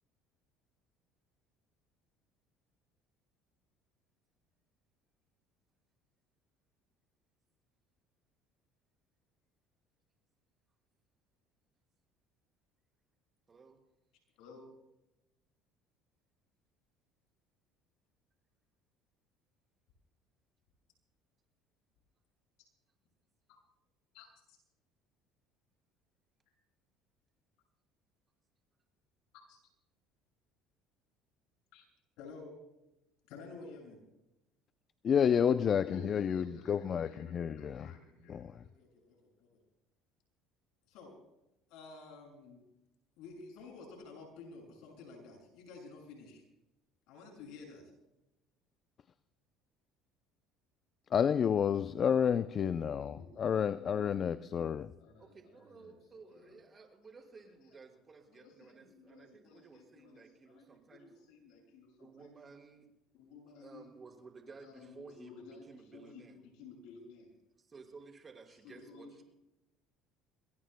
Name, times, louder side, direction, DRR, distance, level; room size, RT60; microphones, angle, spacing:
voice 1, 24.1-24.6 29.3-29.6 31.7-31.9 32.2-32.5 33.3-34.0 35.9-39.5 40.9-41.1 41.7-42.6 43.2-46.4 47.1-47.9 52.9-56.6 57.2-57.3 57.6-57.8 58.3-62.3 63.1-63.9 64.6-67.3 68.6-69.2, left 3 dB, 75° left, 2 dB, 6.6 m, -53 dB
voice 2, 35.0-37.9 38.3-38.6 51.1-54.9, left 8 dB, 45° left, 13 dB, 0.5 m, -30 dB
voice 3, 55.2-61.1 62.0-62.9 63.6-66.4 67.6-69.2, right 4 dB, 30° right, 2 dB, 5.2 m, -55 dB
26.5 x 21.5 x 2.2 m, 0.93 s
supercardioid pair, 85°, 0 cm